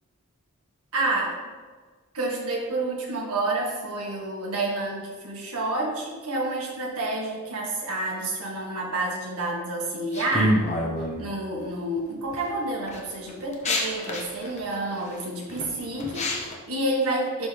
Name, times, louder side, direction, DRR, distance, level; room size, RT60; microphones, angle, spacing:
voice 1, 0.9-1.3 2.1-10.6 11.2-17.5, right 2 dB, 85° right, -2 dB, 1.7 m, -29 dB
sound 1, 10.1-11.2 12.0-12.4 12.9-16.5, left 1 dB, 30° left, 0.9 m, -27 dB
11.0 x 3.8 x 3.3 m, 1.5 s
head